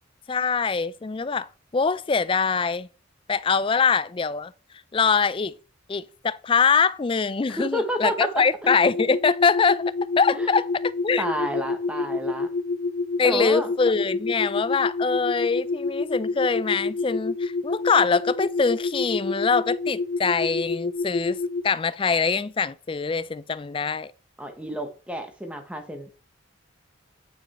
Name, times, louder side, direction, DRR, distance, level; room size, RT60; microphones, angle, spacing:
voice 1, 0.3-2.9 3.3-4.5 4.9-5.5 5.9-9.8 10.2-11.2 13.2-21.4 21.6-24.1, left 5 dB, 25° left, 0.3 m, -23 dB
voice 2, 7.5-8.7 10.3-10.5 11.2-12.5 13.2-13.7 24.4-26.2, equal, 5° right, 1.0 m, -30 dB
sound 1, 8.6-21.6, left 3 dB, 70° left, 1.0 m, -28 dB
9.1 x 5.9 x 4.1 m
head